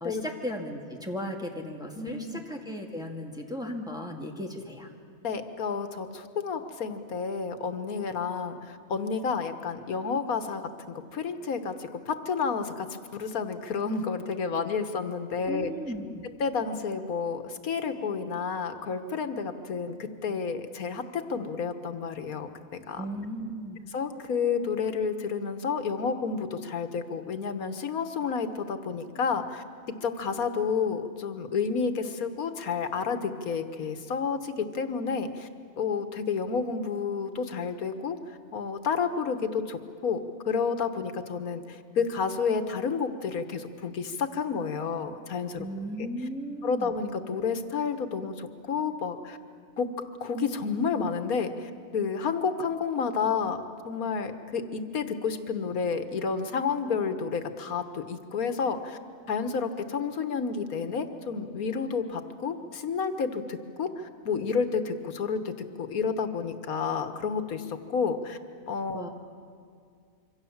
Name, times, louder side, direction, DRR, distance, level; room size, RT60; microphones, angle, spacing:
voice 1, 0.0-4.9 15.5-16.2 23.0-23.8 45.6-46.9 68.9-69.1, equal, 5° right, 0 dB, 2.2 m, -36 dB
voice 2, 2.0-2.4 5.2-10.6 10.9-15.7 16.4-22.5 22.9-23.1 23.9-29.6 30.0-35.5 35.8-45.7 46.0-46.1 46.6-49.4 49.8-49.9 50.2-59.0 59.3-68.4 68.7-69.0, left 5 dB, 85° left, 8 dB, 1.7 m, -30 dB
26.5 x 24.5 x 7.2 m, 2.3 s
omnidirectional pair, 1.5 m